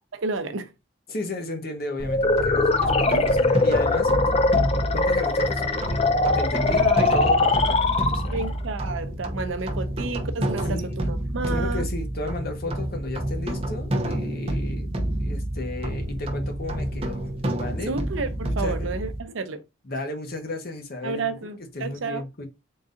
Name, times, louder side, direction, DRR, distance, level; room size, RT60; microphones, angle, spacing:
voice 1, 0.1-0.7 3.1-3.3 6.8-7.1 8.3-11.9 17.9-19.6 21.0-22.2, right 3 dB, 70° right, 0.6 m, -31 dB
voice 2, 1.1-4.4 4.9-6.1 6.3-6.9 7.1-8.4 10.7-10.9 11.5-14.9 15.2-17.9 18.4-18.9 19.8-21.2 21.6-22.5, left 2 dB, 50° left, 1.0 m, -34 dB
sound 1, 2.0-19.2, right 1 dB, 30° right, 0.7 m, -29 dB
sound 2, 2.1-8.6, left 3 dB, 30° left, 0.4 m, -22 dB
3.9 x 2.6 x 3.7 m
head